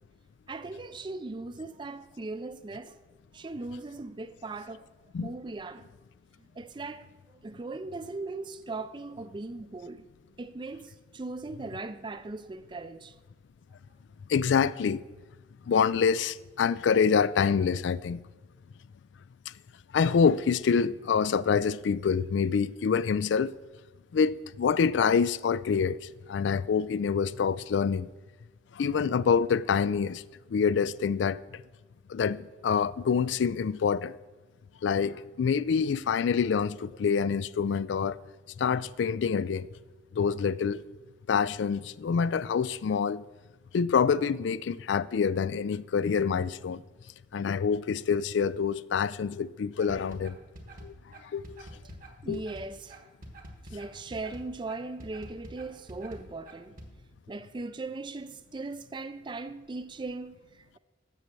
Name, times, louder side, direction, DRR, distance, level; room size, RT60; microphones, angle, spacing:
voice 1, 0.5-3.0 3.3-4.9 5.2-5.9 6.4-7.1 7.4-10.0 10.4-13.1 51.8-51.9 52.2-53.0 53.7-56.8 57.3-60.8, right 3 dB, 25° right, 0.4 m, -39 dB
voice 2, 14.3-15.0 15.7-18.2 19.5-19.6 19.9-23.5 24.1-26.0 26.3-28.1 28.7-30.2 30.5-31.6 32.1-34.1 34.8-38.2 38.6-39.7 40.1-40.8 41.3-43.2 43.7-46.8 47.3-50.4 50.8-50.9 51.2-51.6 52.3-52.4, left 6 dB, 75° left, 0.3 m, -26 dB
sound 1, 49.8-56.9, right 1 dB, 45° right, 1.3 m, -46 dB
8.1 x 6.8 x 7.5 m
head